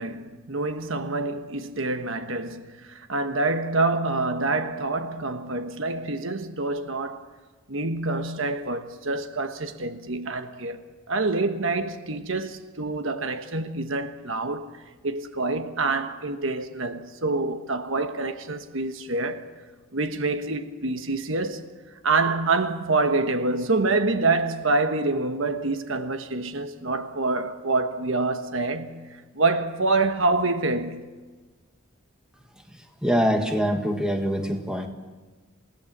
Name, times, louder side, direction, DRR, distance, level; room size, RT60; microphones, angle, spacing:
voice 1, 0.0-7.3 7.7-10.8 11.1-19.5 19.9-21.7 22.0-31.0, right 3 dB, 65° right, 1.3 m, -26 dB
voice 2, 33.0-34.9, equal, 5° right, 1.6 m, -24 dB
28.0 x 17.5 x 7.4 m
head